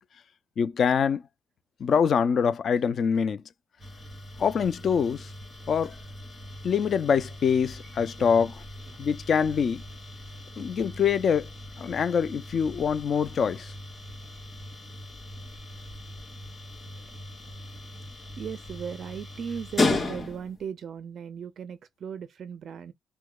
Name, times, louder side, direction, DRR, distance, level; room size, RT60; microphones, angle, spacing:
voice 1, 0.6-1.2 1.8-3.4 4.4-5.3 5.7-5.9 6.6-8.6 9.0-9.8 10.6-11.5 11.8-13.7, left 7 dB, 40° left, 0.4 m, -24 dB
sound 1, 3.8-20.7, left 2 dB, 10° left, 2.4 m, -36 dB
voice 2, 8.2-8.5 8.9-9.1 10.6-10.7 17.0-17.1 18.4-22.9, right 7 dB, 45° right, 0.4 m, -38 dB
4.6 x 2.2 x 2.3 m
cardioid pair, 170°, 0 cm